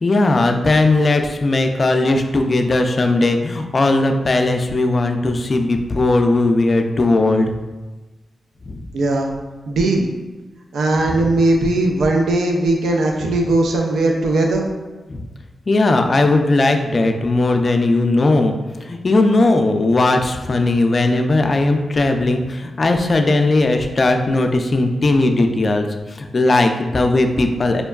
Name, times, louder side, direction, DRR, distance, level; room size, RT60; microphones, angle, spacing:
voice 1, 0.0-7.5 8.7-8.8 15.1-15.2 15.7-18.5 18.9-25.9 26.3-27.8, left 2 dB, 50° left, 5 dB, 0.4 m, -17 dB
voice 2, 8.9-9.3 9.7-10.1 10.7-14.7, right 2 dB, 85° right, 1 dB, 0.4 m, -18 dB
5.0 x 2.2 x 2.3 m, 1.2 s
cardioid pair, 50°, 0 cm